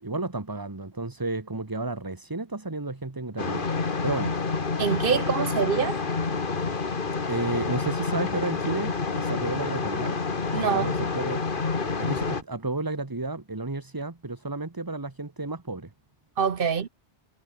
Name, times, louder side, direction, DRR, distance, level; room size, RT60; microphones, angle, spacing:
voice 1, 0.0-3.7 4.0-4.3 7.3-10.2 10.5-11.4 12.0-15.9, right 2 dB, 20° right, 1.3 m, -32 dB
sound 1, 3.4-12.4, left 4 dB, 50° left, 1.8 m, -28 dB
voice 2, 4.8-6.0 10.5-10.9 16.4-16.9, right 6 dB, 55° right, 1.2 m, -25 dB
omnidirectional pair, 1.2 m